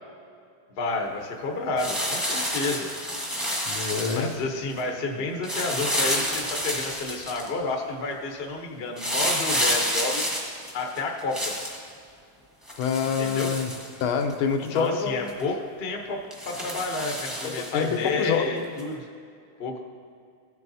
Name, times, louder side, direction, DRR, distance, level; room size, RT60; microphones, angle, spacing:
voice 1, 0.7-2.9 4.1-10.5 10.7-11.5 13.2-13.5 14.7-19.1 19.6-19.8, left 3 dB, 50° left, 1 dB, 0.7 m, -30 dB
sound 1, 1.8-4.4 5.4-7.5 9.0-11.8 12.7-14.3 14.8-14.9 15.3-15.4 16.3-17.9 18.8-18.9, equal, ahead, 0.8 m, -29 dB
voice 2, 3.7-4.3 12.8-13.7 14.0-15.3 17.4-18.4, left 6 dB, 80° left, 5 dB, 1.5 m, -26 dB
15.5 x 7.6 x 2.7 m, 2.3 s
omnidirectional pair, 2.3 m